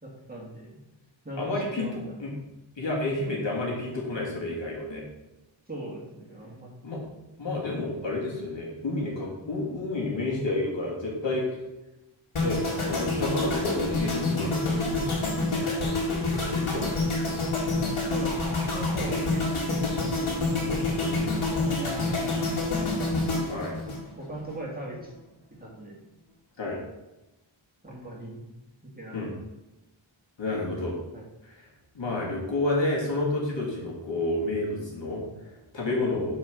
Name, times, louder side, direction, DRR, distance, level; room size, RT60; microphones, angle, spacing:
voice 1, 0.0-0.8 1.2-1.9 5.7-6.7 15.6-16.0 17.8-19.5 19.8-20.2 20.5-20.9 21.5-22.8 24.2-25.1 25.6-26.0 27.8-28.4 28.8-29.2 31.1-31.2 35.8-36.0, right 1 dB, 20° right, -4 dB, 2.1 m, -39 dB
voice 2, 1.4-1.9 2.2-2.3 2.8-5.0 6.8-7.0 7.4-11.4 12.4-15.1 16.6-17.1 21.0-21.2 23.5-23.8 26.6-26.8 29.1-29.3 30.4-31.0 31.4-31.6 31.9-36.3, left 2 dB, 65° left, -4 dB, 2.5 m, -30 dB
sound 1, 12.4-24.5 24.8-25.1, left 2 dB, 85° left, 2.2 m, -27 dB
5.9 x 4.7 x 6.1 m, 0.99 s
wide cardioid pair, 85°, 48 cm